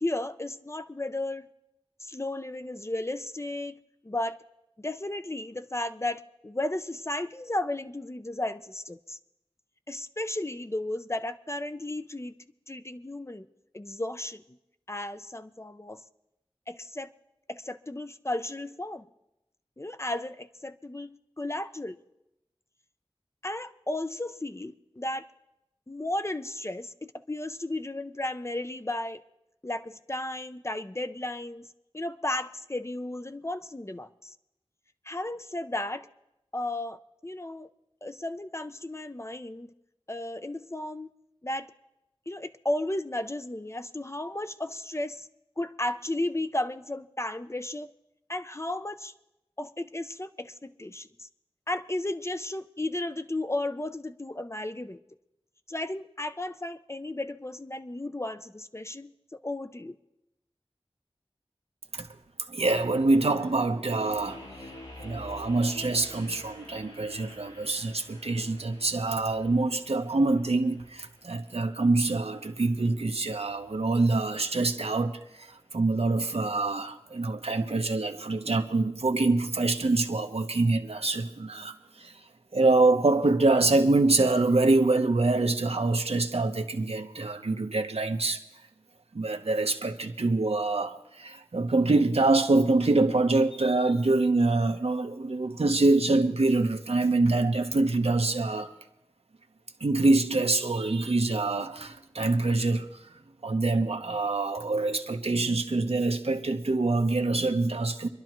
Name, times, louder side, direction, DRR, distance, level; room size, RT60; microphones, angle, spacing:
voice 1, 0.0-1.5 2.0-3.8 4.0-4.4 4.8-9.2 9.9-12.3 12.7-13.5 13.7-14.4 14.9-16.0 16.7-17.1 17.5-19.0 19.8-22.0 23.4-25.2 25.9-29.2 29.6-31.7 31.9-34.3 35.1-36.1 36.5-37.0 37.2-37.7 38.0-39.7 40.1-41.1 41.4-41.7 42.3-45.3 45.6-47.9 48.3-49.1 49.6-51.1 51.7-55.0 55.7-59.1 59.4-60.0, left 1 dB, 25° left, 0.5 m, -34 dB
voice 2, 62.5-64.4 65.0-75.5 75.7-82.1 82.5-88.4 89.1-98.7 99.8-103.0 103.4-108.1, right 2 dB, 80° right, 0.9 m, -25 dB
sound 1, 63.9-75.0, left 1 dB, 75° left, 4.9 m, -49 dB
25.5 x 11.5 x 3.1 m
wide cardioid pair, 55°, 10 cm